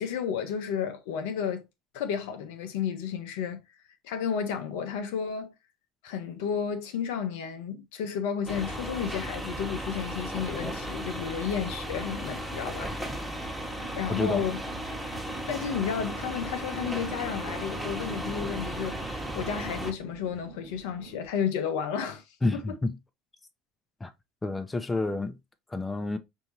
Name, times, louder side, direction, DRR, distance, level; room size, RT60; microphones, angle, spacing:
voice 1, 0.0-1.6 1.9-3.6 4.0-5.5 6.0-12.9 13.3-13.4 14.0-14.6 15.5-22.2, left 7 dB, 70° left, 0.7 m, -32 dB
sound 1, 8.5-19.9, right 1 dB, ahead, 1.2 m, -35 dB
sound 2, 13.6-21.3, right 7 dB, 70° right, 0.7 m, -48 dB
voice 2, 14.1-14.4 22.4-23.0 24.0-24.1 24.4-25.4 25.7-26.2, left 2 dB, 15° left, 0.7 m, -29 dB
5.4 x 2.7 x 3.0 m
hypercardioid pair, 70°, 0 cm